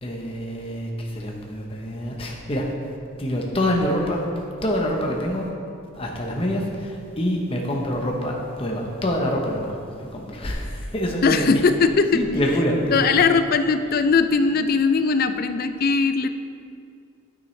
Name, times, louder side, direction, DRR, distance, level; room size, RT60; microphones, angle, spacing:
voice 1, 0.0-2.7 3.2-4.2 4.6-5.5 5.9-9.7 10.1-11.6 12.1-13.1, equal, 25° left, -1 dB, 0.8 m, -26 dB
voice 2, 11.2-12.2 12.9-16.3, left 4 dB, 40° left, 10 dB, 0.3 m, -20 dB
9.6 x 8.8 x 3.2 m, 2.5 s
head